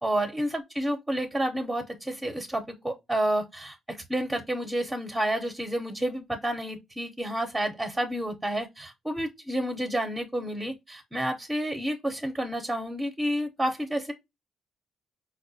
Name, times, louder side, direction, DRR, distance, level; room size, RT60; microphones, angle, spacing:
voice 1, 0.0-14.1, right 1 dB, 10° right, 0.6 m, -30 dB
4.7 x 2.2 x 2.5 m
cardioid pair, 90°, 0 cm